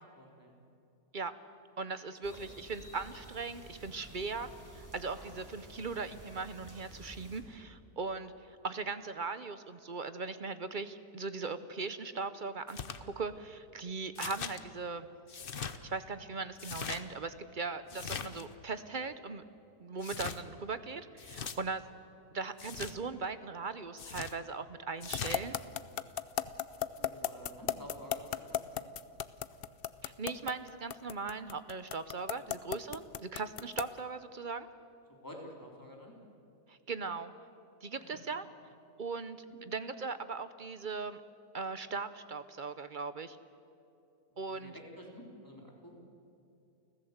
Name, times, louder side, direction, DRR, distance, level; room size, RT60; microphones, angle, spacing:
voice 1, 0.2-0.5 2.3-2.4 27.0-28.8 32.3-32.4 35.1-36.1 38.0-38.2 44.3-46.0, equal, 10° left, -1 dB, 3.5 m, -50 dB
voice 2, 1.8-15.1 15.8-19.4 19.8-21.8 22.3-25.6 30.0-34.7 36.7-37.3 37.8-38.5 39.0-39.4 39.7-41.2 41.5-43.4 44.4-44.7, right 4 dB, 45° right, 12 dB, 0.6 m, -39 dB
sound 1, 2.2-7.4, right 1 dB, 10° right, 3.9 m, -52 dB
sound 2, 12.7-13.0 14.2-14.6 15.3-15.8 16.6-17.0 17.9-18.5 20.0-20.4 21.2-21.6 22.6-22.9 24.0-24.4 25.0-25.4, left 6 dB, 40° left, 0.9 m, -40 dB
sound 3, 25.1-34.0, left 10 dB, 60° left, 0.6 m, -34 dB
29.5 x 15.0 x 8.0 m, 2.7 s
omnidirectional pair, 1.7 m